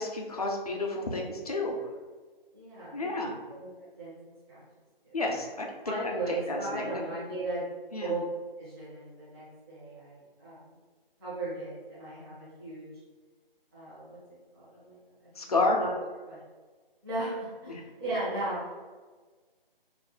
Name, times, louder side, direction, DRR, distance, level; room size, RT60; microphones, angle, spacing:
voice 1, 0.0-1.7 2.9-3.3 5.1-5.7 6.5-7.0 7.9-8.1 15.4-15.8 17.7-17.8, left 2 dB, 40° left, 1 dB, 0.4 m, -30 dB
voice 2, 2.5-4.1 4.5-4.6 5.8-7.6 8.0-8.2 8.6-10.8 11.2-12.9 13.7-14.2 14.5-15.9 16.3-16.4 17.0-18.8, right 2 dB, 25° right, -10 dB, 0.8 m, -37 dB
2.4 x 2.0 x 3.7 m, 1.4 s
figure-of-eight pair, 150°, 30 cm